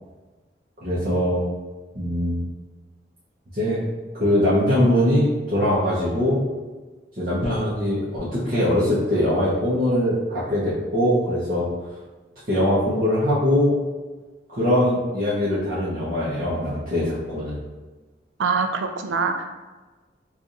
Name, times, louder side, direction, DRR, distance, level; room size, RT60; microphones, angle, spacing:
voice 1, 0.8-1.4 1.9-2.4 3.5-3.8 4.2-6.5 7.2-11.7 12.5-13.8 14.5-17.6, left 1 dB, 50° right, -11 dB, 1.0 m, -22 dB
voice 2, 18.4-19.5, right 5 dB, 90° right, 5 dB, 0.4 m, -24 dB
4.7 x 2.4 x 2.6 m, 1.2 s
head